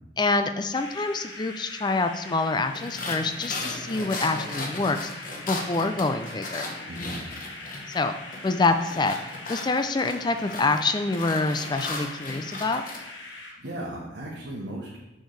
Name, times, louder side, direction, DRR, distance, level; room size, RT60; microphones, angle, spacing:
voice 1, 0.2-5.1 5.4-6.7 7.9-8.2 8.4-9.2 9.5-12.8, left 3 dB, 25° left, 8 dB, 0.3 m, -26 dB
sound 1, 0.7-13.5, left 2 dB, 80° left, 1.5 m, -42 dB
sound 2, 2.7-8.0 8.3-13.0, left 2 dB, 45° left, 1.0 m, -36 dB
voice 2, 6.9-7.3 13.2-15.0, right 1 dB, 70° right, -5 dB, 1.2 m, -37 dB
6.5 x 6.4 x 3.2 m, 0.97 s
head